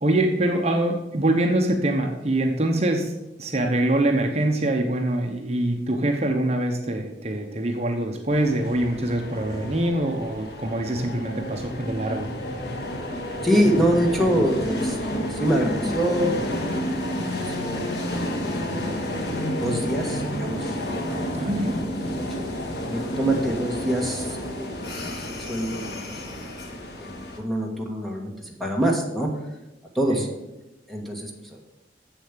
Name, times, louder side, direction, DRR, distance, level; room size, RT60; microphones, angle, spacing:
voice 1, 0.0-3.1 3.4-12.3 21.3-21.8, right 1 dB, 35° right, 2 dB, 0.8 m, -24 dB
sound 1, 8.3-27.4, left 1 dB, 65° left, 1.6 m, -30 dB
voice 2, 13.4-16.9 17.3-18.5 19.3-20.8 21.8-22.4 22.9-26.1 27.0-29.3 29.9-30.3 30.9-31.6, right 1 dB, ahead, 1 dB, 1.5 m, -26 dB
7.5 x 7.1 x 7.3 m, 0.98 s
head